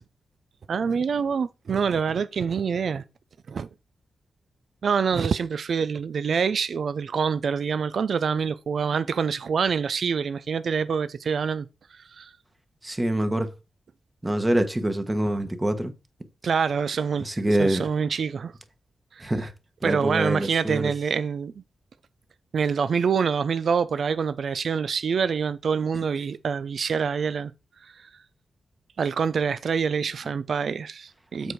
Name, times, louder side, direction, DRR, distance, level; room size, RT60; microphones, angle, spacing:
voice 1, 0.7-3.0 3.5-3.7 4.8-11.7 11.9-12.3 16.4-17.3 17.6-18.5 19.1-19.3 19.8-21.5 22.5-27.5 27.8-28.1 29.0-31.5, right 6 dB, 65° right, 0.5 m, -26 dB
voice 2, 12.8-13.5 14.2-15.9 17.2-17.9 19.2-19.5 19.8-20.9 25.9-26.0 31.4-31.5, right 1 dB, 15° right, 1.4 m, -25 dB
7.8 x 4.6 x 5.0 m
cardioid pair, 90°, 0 cm